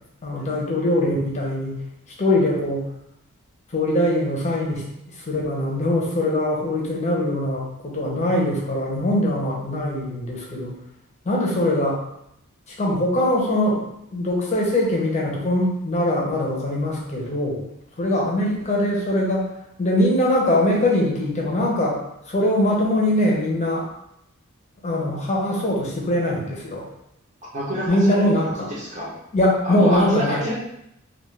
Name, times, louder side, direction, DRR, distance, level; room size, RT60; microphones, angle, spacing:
voice 1, 0.2-1.8 2.2-2.9 3.7-10.7 11.2-12.0 12.8-13.8 14.1-17.6 18.0-19.5 19.8-22.0 22.3-23.9 24.8-26.8 27.9-28.7 29.3-30.4, left 1 dB, 35° left, -3 dB, 0.7 m, -22 dB
voice 2, 27.5-29.1 29.6-30.5, equal, 35° right, -8 dB, 0.7 m, -28 dB
2.3 x 2.3 x 3.2 m, 0.79 s
head